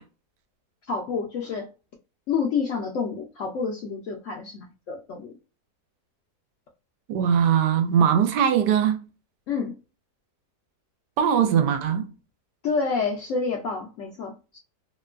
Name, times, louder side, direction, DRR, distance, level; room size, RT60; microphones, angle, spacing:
voice 1, 0.9-1.7 2.3-5.3 9.5-9.7 12.6-14.6, left 5 dB, 70° left, 0.7 m, -28 dB
voice 2, 7.1-9.0 11.2-12.1, right 8 dB, 85° right, 1.2 m, -21 dB
2.9 x 2.2 x 2.3 m
omnidirectional pair, 1.8 m